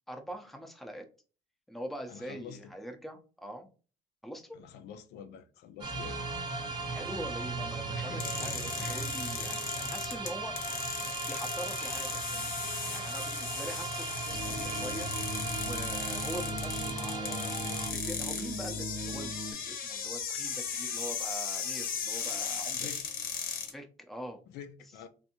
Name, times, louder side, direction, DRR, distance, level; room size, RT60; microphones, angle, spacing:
voice 1, 0.1-1.1 1.7-3.7 4.2-4.6 6.8-10.6 11.0-15.1 15.6-22.9 23.7-24.4 24.8-25.0, equal, ahead, 0.5 m, -43 dB
voice 2, 2.1-2.6 4.5-6.3 7.9-9.0 22.7-23.0 24.5-25.1, left 8 dB, 80° left, 0.5 m, -47 dB
sound 1, 5.8-17.9, right 3 dB, 25° right, 0.7 m, -37 dB
sound 2, 8.2-23.7, left 6 dB, 60° left, 0.8 m, -37 dB
sound 3, 14.3-19.5, equal, 65° right, 0.8 m, -39 dB
3.4 x 2.6 x 2.7 m
cardioid pair, 110°, 17 cm